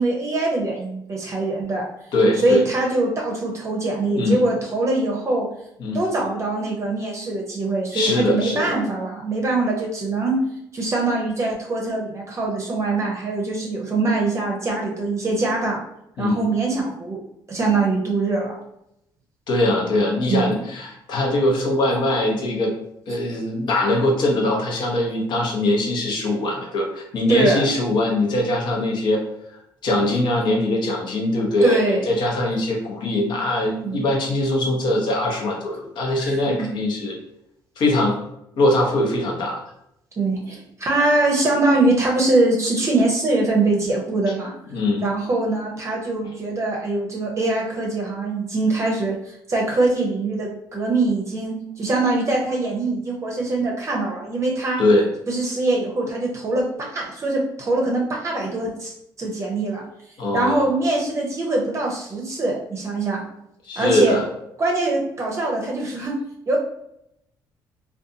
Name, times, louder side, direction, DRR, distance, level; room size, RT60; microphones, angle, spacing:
voice 1, 0.0-1.9 2.4-5.5 5.9-10.4 10.7-15.8 16.2-17.2 17.5-18.6 20.3-20.6 27.3-27.6 31.6-32.1 33.8-34.1 36.2-36.7 40.2-44.5 45.0-54.8 55.3-56.7 56.9-58.9 59.2-59.8 60.3-63.2 63.8-64.2 64.6-66.1 66.5-66.6, right 2 dB, 35° right, -2 dB, 0.6 m, -23 dB
voice 2, 2.1-2.6 4.1-4.4 5.8-6.0 7.9-8.7 16.2-16.4 19.5-22.7 23.1-29.2 29.8-37.1 37.8-38.2 38.6-39.6 44.7-45.0 54.8-55.1 60.2-60.7 63.7-64.2, left 1 dB, 60° left, 0 dB, 0.8 m, -21 dB
2.5 x 2.3 x 2.7 m, 0.80 s
cardioid pair, 85°, 8 cm